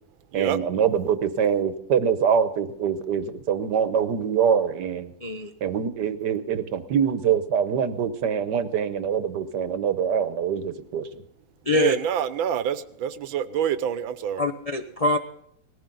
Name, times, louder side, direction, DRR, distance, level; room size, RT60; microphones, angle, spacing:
voice 1, 0.3-5.1 5.6-11.1, right 7 dB, 65° right, 11 dB, 1.5 m, -24 dB
voice 2, 5.2-5.5 11.7-12.0 14.4-15.2, left 2 dB, 55° left, 4 dB, 0.4 m, -24 dB
voice 3, 11.7-14.4, right 9 dB, 85° right, 13 dB, 1.6 m, -26 dB
19.5 x 15.5 x 3.9 m, 0.71 s
omnidirectional pair, 2.1 m